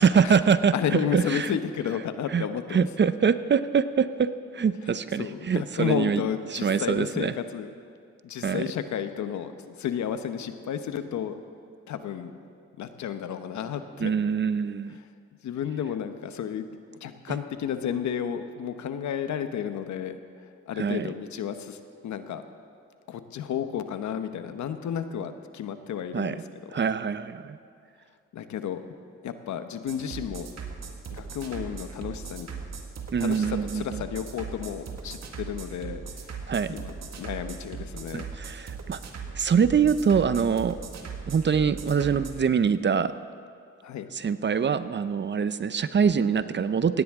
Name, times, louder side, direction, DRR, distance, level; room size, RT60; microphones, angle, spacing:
voice 1, 0.0-1.5 2.3-2.5 2.7-6.2 6.5-7.3 8.4-8.6 14.0-15.0 20.8-21.1 26.1-26.3 26.7-27.6 33.1-33.8 36.5-36.8 38.1-39.0 39.4-40.8 41.3-43.1 44.1-47.0, right 6 dB, 40° right, 13 dB, 0.7 m, -24 dB
voice 2, 0.7-2.9 5.2-7.7 8.2-11.4 11.9-12.3 12.8-14.1 15.0-15.1 15.4-16.7 17.0-22.4 23.1-26.8 28.3-28.8 29.2-30.5 31.1-32.5 33.2-38.3 43.8-44.1, left 8 dB, 75° left, 9 dB, 1.0 m, -32 dB
sound 1, 29.9-42.3, right 5 dB, 65° right, 1.8 m, -39 dB
18.5 x 17.0 x 3.7 m, 2.3 s
supercardioid pair, 60°, 29 cm